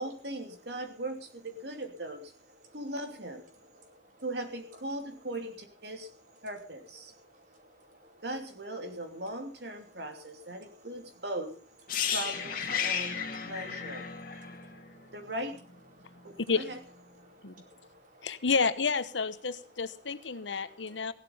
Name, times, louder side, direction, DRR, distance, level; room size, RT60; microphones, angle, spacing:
voice 1, 0.0-2.3 2.7-3.5 4.2-6.1 6.4-7.1 8.2-11.5 12.1-14.1 15.1-15.6 16.2-16.8, right 1 dB, 65° right, 5 dB, 2.8 m, -39 dB
voice 2, 3.7-4.2 7.1-8.2 10.8-10.9 11.9-12.1 14.2-15.2 16.0-16.4 17.2-18.3 20.6-21.1, equal, 45° right, 1 dB, 4.4 m, -59 dB
sound 1, 11.9-15.7 16.0-16.2, left 7 dB, 50° left, 2.3 m, -34 dB
voice 3, 18.2-21.1, left 4 dB, 85° left, 13 dB, 1.0 m, -30 dB
16.5 x 12.0 x 5.6 m, 0.41 s
head